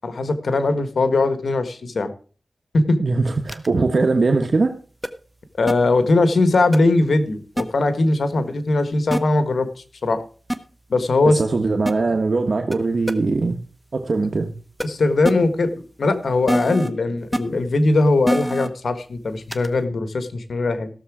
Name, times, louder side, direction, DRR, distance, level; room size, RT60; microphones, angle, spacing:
voice 1, 0.0-2.1 2.7-3.0 5.6-9.7 10.0-10.2 10.9-11.4 14.8-15.7 16.0-20.9, left 2 dB, 80° left, 10 dB, 1.5 m, -20 dB
voice 2, 3.0-4.7 11.2-13.6 13.9-14.5, right 3 dB, 60° right, 5 dB, 1.2 m, -21 dB
sound 1, 3.5-3.7 5.0-5.1 5.7-5.8 6.7-6.8 7.6-7.7 9.1-9.2 10.5-10.6 11.9-12.0 12.7-12.8 13.1-13.2 14.8-14.9 15.2-15.3 16.5-16.9 17.3-17.4 18.3-18.7 19.5-19.7, equal, 5° right, 1.1 m, -23 dB
16.0 x 7.0 x 4.9 m, 0.39 s
wide cardioid pair, 60°, 0 cm